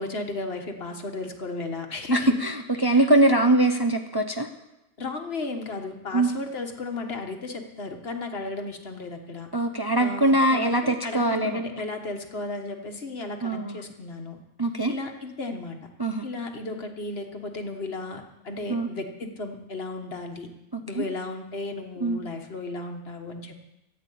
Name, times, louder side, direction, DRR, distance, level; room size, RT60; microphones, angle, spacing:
voice 1, 0.0-2.3 2.8-3.1 5.0-9.5 10.0-14.4 14.9-15.8 16.2-20.5 20.9-23.6, left 3 dB, 55° left, 4 dB, 1.6 m, -34 dB
voice 2, 2.1-4.5 6.1-6.3 9.5-11.6 13.4-13.8 14.6-14.9 16.0-16.2 18.7-18.9 20.7-21.1 22.0-22.2, right 1 dB, 25° right, 5 dB, 0.7 m, -22 dB
13.5 x 8.9 x 8.4 m, 0.93 s
omnidirectional pair, 1.2 m